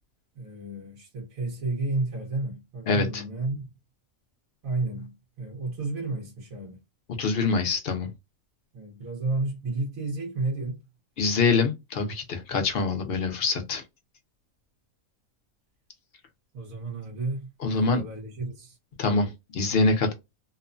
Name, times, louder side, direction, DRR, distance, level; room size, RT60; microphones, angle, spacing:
voice 1, 0.3-3.7 4.6-6.8 8.7-10.8 16.5-18.8, right 3 dB, 85° right, 1.3 m, -32 dB
voice 2, 2.9-3.2 7.2-8.1 11.2-13.8 17.6-18.0 19.0-20.1, left 4 dB, 55° left, 0.8 m, -25 dB
3.0 x 2.1 x 2.4 m
omnidirectional pair, 1.4 m